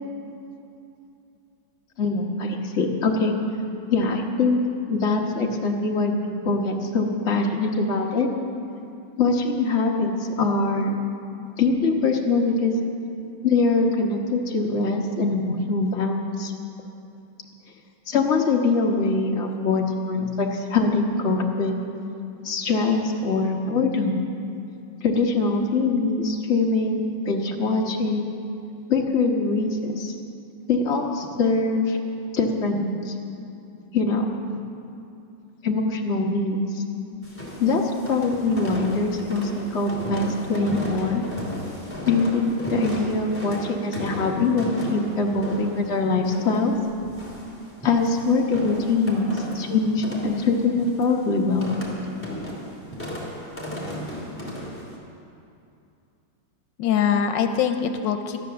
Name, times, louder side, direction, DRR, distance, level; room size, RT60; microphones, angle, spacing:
voice 1, 2.0-3.4 3.9-4.6 4.9-8.3 9.2-10.9 11.6-12.7 13.4-16.5 18.1-21.8 22.4-24.1 25.0-28.3 28.9-30.1 30.7-32.0 32.3-33.1 33.9-34.2 35.6-36.8 37.6-37.8 38.1-41.2 42.1-46.7 47.8-51.7, left 3 dB, 40° left, 0 dB, 1.5 m, -23 dB
sound 1, 37.2-55.0, equal, 5° left, 2.6 m, -35 dB
voice 2, 56.8-58.4, left 8 dB, 90° left, 7 dB, 1.4 m, -24 dB
13.5 x 11.0 x 6.9 m, 2.7 s
omnidirectional pair, 1.9 m